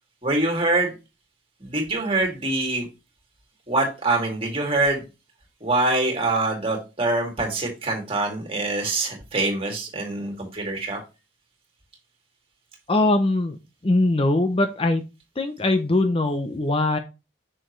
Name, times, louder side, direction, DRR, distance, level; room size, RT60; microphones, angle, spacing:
voice 1, 0.2-0.9 1.6-2.9 3.7-5.0 5.6-11.0, right 2 dB, 30° right, 1 dB, 2.4 m, -24 dB
voice 2, 12.9-13.6 13.8-15.0 15.4-17.0, left 2 dB, 30° left, 7 dB, 0.6 m, -21 dB
6.5 x 6.4 x 3.1 m, 0.27 s
head